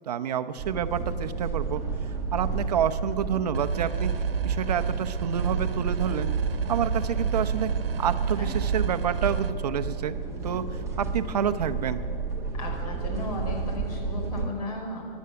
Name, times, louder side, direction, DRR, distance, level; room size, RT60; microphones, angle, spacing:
voice 1, 0.1-1.8 2.3-4.1 4.4-6.3 6.7-7.7 8.0-10.2 10.4-12.0, right 8 dB, 45° right, 10 dB, 0.7 m, -28 dB
sound 1, 0.6-14.5, right 4 dB, 10° right, 1.4 m, -32 dB
sound 2, 3.5-9.5, right 6 dB, 75° right, 1.2 m, -29 dB
voice 2, 12.5-15.2, left 1 dB, 40° left, 1 dB, 4.3 m, -35 dB
15.5 x 11.5 x 7.8 m, 2.7 s
hypercardioid pair, 155°, 29 cm